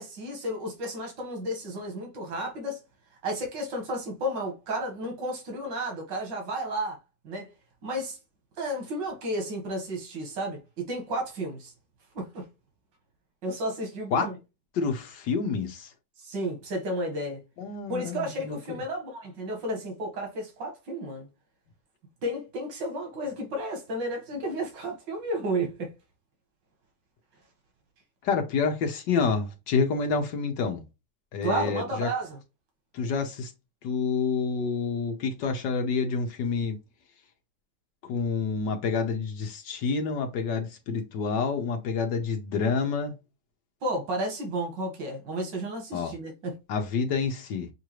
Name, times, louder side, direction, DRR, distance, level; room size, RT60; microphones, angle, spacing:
voice 1, 0.0-2.8 3.2-7.0 7.2-7.5 7.8-8.2 8.6-11.7 12.1-12.4 13.4-14.3 16.2-17.4 17.9-21.3 22.2-25.9 31.4-32.4 43.8-46.6, right 1 dB, 85° right, 2.2 m, -32 dB
voice 2, 14.7-15.9 17.6-18.6 28.2-30.8 31.3-32.1 32.9-33.5 33.8-36.8 38.0-43.1 45.9-46.1 46.7-47.7, left 5 dB, 80° left, 1.5 m, -28 dB
6.4 x 2.6 x 3.0 m
omnidirectional pair, 1.9 m